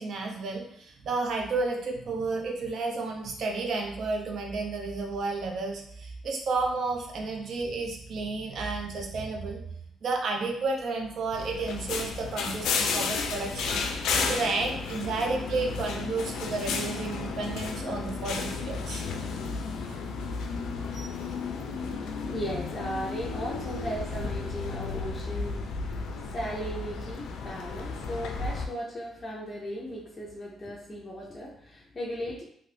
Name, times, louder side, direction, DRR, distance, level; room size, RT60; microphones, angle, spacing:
voice 1, 0.0-9.6 10.0-19.0 19.9-20.0 20.9-21.1, right 3 dB, 65° right, 2 dB, 0.6 m, -32 dB
sound 1, 11.3-28.7, left 4 dB, 80° left, 0.3 m, -33 dB
voice 2, 21.1-32.4, equal, 25° left, -4 dB, 0.6 m, -37 dB
2.5 x 2.5 x 3.3 m, 0.68 s
cardioid pair, 90°, 0 cm